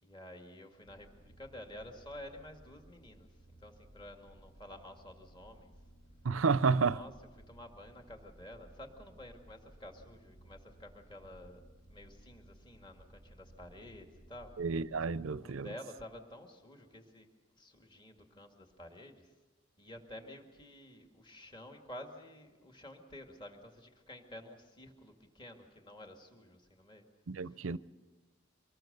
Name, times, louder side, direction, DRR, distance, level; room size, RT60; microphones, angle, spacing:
voice 1, 0.0-5.7 6.8-7.1 7.5-11.6 11.9-14.5 15.4-17.3 17.6-19.3 19.8-27.1 27.4-27.7, left 1 dB, 25° left, 2.0 m, -51 dB
sound 1, 0.8-15.3, right 1 dB, 70° left, 2.0 m, -59 dB
voice 2, 6.2-7.0 14.6-15.7 27.3-27.8, right 4 dB, 85° right, 0.6 m, -30 dB
25.0 x 20.0 x 6.7 m
head